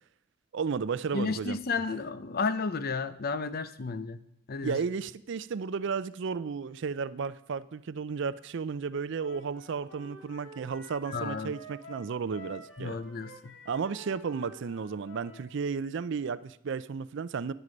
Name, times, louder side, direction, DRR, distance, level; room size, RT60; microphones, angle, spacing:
voice 1, 0.5-1.6 4.6-13.0 13.7-17.5, right 5 dB, 65° right, 0.4 m, -33 dB
voice 2, 1.1-4.8 11.1-11.5 12.8-13.6, left 4 dB, 50° left, 0.6 m, -32 dB
Wind instrument woodwind instrument, 9.1-15.5, left 1 dB, 75° left, 2.3 m, -48 dB
10.5 x 9.8 x 5.2 m
head